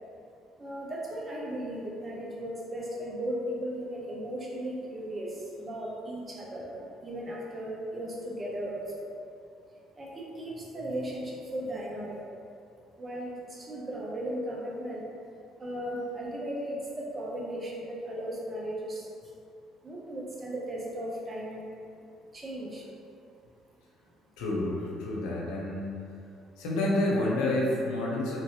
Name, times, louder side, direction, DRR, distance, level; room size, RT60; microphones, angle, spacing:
voice 1, 0.6-5.3 5.6-9.1 10.0-12.2 13.0-15.0 15.6-19.0 19.8-21.7 22.3-22.8, right 1 dB, 35° right, -4 dB, 0.8 m, -36 dB
voice 2, 24.4-25.9 26.6-28.4, left 1 dB, 80° left, -4 dB, 0.6 m, -29 dB
3.0 x 2.7 x 2.9 m, 2.5 s
hypercardioid pair, 60°, 0 cm